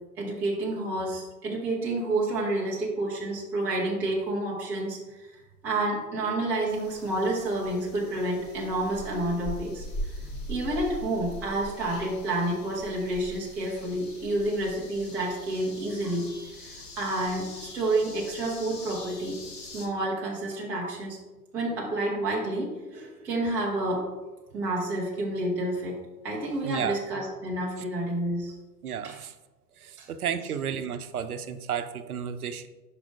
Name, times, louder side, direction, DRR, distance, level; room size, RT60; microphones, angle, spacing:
voice 1, 0.2-5.3 5.6-9.9 10.5-19.4 19.7-21.2 21.5-24.1 24.5-28.6 29.0-29.2 30.0-30.1, right 1 dB, 5° right, -5 dB, 0.4 m, -29 dB
sound 1, 6.7-19.9, equal, 30° left, 1.3 m, -42 dB
voice 2, 10.2-10.5 26.6-27.0 28.8-29.3 29.8-32.7, right 8 dB, 65° right, 10 dB, 0.7 m, -33 dB
5.3 x 4.9 x 4.8 m, 1.2 s
figure-of-eight pair, 105°, 48 cm